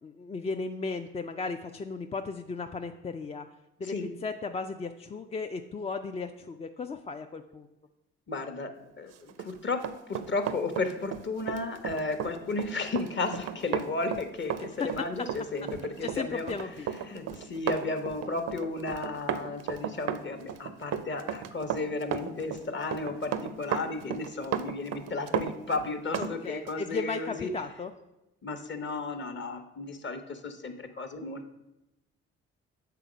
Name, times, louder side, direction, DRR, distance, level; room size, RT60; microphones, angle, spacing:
voice 1, 0.0-3.5 3.8-4.0 4.2-7.7 14.6-14.9 16.0-16.9 26.2-27.9, left 4 dB, 20° left, 6 dB, 0.3 m, -35 dB
voice 2, 8.3-8.7 9.0-9.8 10.1-16.7 17.0-27.5 28.4-31.5, left 3 dB, 40° left, 7 dB, 0.9 m, -34 dB
Run, 9.3-26.3 26.7-26.8, right 9 dB, 60° right, 0.5 m, -34 dB
6.8 x 3.7 x 5.0 m, 0.95 s
supercardioid pair, 50°, 29 cm